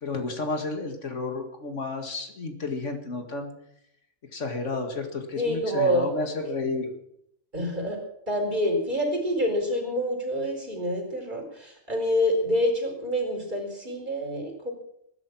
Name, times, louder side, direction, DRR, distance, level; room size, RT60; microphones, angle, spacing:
voice 1, 0.0-3.5 4.3-6.9, left 3 dB, 75° left, 5 dB, 2.4 m, -31 dB
voice 2, 5.3-6.1 6.6-6.7 7.5-8.0 8.3-14.7, equal, 40° right, 1 dB, 4.6 m, -27 dB
20.0 x 10.5 x 6.1 m, 0.77 s
omnidirectional pair, 1.3 m